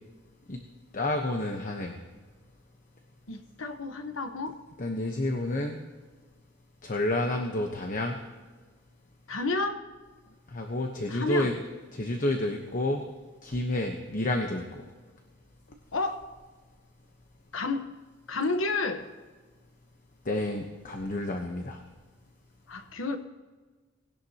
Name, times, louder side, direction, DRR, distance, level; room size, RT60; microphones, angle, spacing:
voice 1, 0.9-2.0 4.8-5.8 6.8-8.2 10.5-11.5 11.9-13.0 13.4-14.8 20.2-21.8, left 1 dB, 45° left, 3 dB, 1.0 m, -30 dB
voice 2, 3.3-4.5 9.3-9.8 11.1-11.5 15.9-16.3 17.5-17.9 18.3-19.1 22.7-23.2, left 3 dB, 80° left, 7 dB, 1.2 m, -30 dB
19.0 x 17.5 x 2.9 m, 1.3 s
head